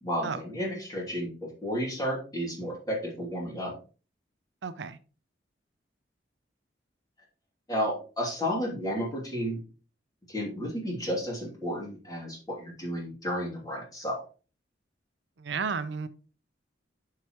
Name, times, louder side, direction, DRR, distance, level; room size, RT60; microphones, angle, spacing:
voice 1, 0.0-3.7 7.7-9.6 10.3-14.2, equal, 20° left, -2 dB, 2.7 m, -32 dB
voice 2, 4.6-5.0 15.4-16.1, right 5 dB, 70° right, 13 dB, 0.5 m, -32 dB
9.1 x 5.8 x 3.0 m, 0.35 s
head